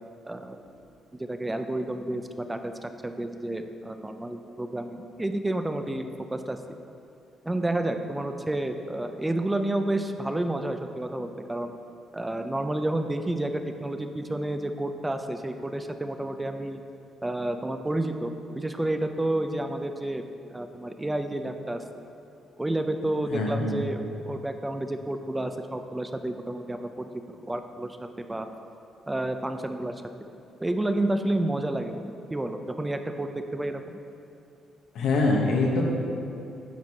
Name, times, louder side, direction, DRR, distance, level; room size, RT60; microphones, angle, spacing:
voice 1, 0.2-0.6 1.1-6.6 7.4-11.7 12.1-16.8 17.2-20.2 20.5-21.8 22.6-28.5 29.1-30.0 30.6-34.0, right 1 dB, 15° right, 7 dB, 0.4 m, -30 dB
voice 2, 23.3-23.8 34.9-35.8, left 3 dB, 80° left, -1 dB, 1.2 m, -24 dB
9.2 x 4.7 x 4.2 m, 2.7 s
cardioid pair, 90°, 0 cm